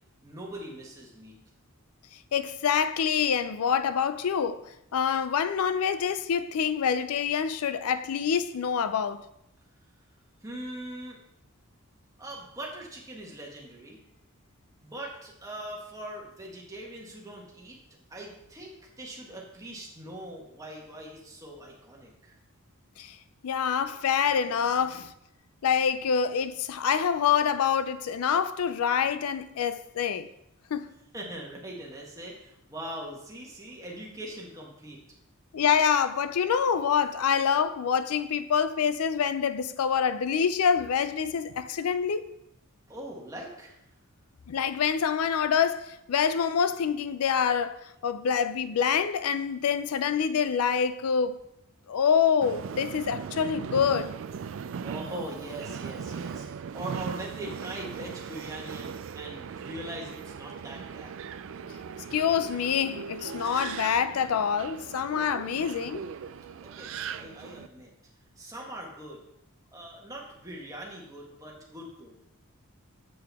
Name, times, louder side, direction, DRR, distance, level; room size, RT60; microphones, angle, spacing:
voice 1, 0.2-1.3 10.4-11.2 12.2-14.0 14.8-17.8 18.1-22.4 31.1-35.0 42.9-43.8 54.8-61.2 66.6-67.9 68.4-69.2 69.7-72.2, right 1 dB, 15° right, 1.5 m, -41 dB
voice 2, 2.3-4.6 4.9-9.2 23.0-23.2 23.4-25.1 25.6-30.3 30.7-30.9 35.5-42.2 44.5-51.4 51.9-54.1 62.1-66.0, left 7 dB, 85° left, 0.4 m, -26 dB
Subway metro underground, 52.4-67.7, right 6 dB, 60° right, 0.3 m, -39 dB
7.8 x 6.6 x 3.5 m
head